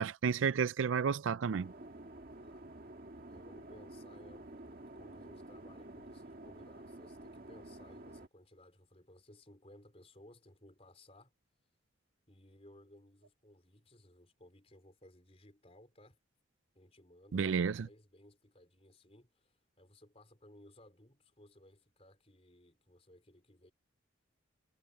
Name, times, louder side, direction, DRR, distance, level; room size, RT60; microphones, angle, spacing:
voice 1, 0.0-1.7 17.3-17.9, right 6 dB, 80° right, 0.4 m, -31 dB
sound 1, 1.5-8.3, right 1 dB, 45° right, 2.0 m, -50 dB
voice 2, 3.3-11.3 12.3-16.2 16.7-17.4 17.7-23.7, left 1 dB, 30° left, 4.6 m, -60 dB
head